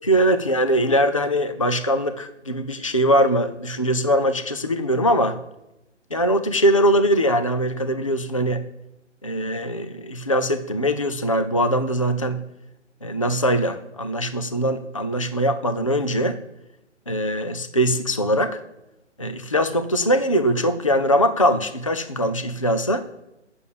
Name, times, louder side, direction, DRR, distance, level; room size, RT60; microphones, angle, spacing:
voice 1, 0.1-5.4 6.1-8.6 9.2-12.4 13.0-16.4 17.1-18.6 19.2-23.1, equal, 30° left, 9 dB, 0.5 m, -21 dB
8.8 x 6.9 x 8.1 m, 0.91 s
hypercardioid pair, 175°, 36 cm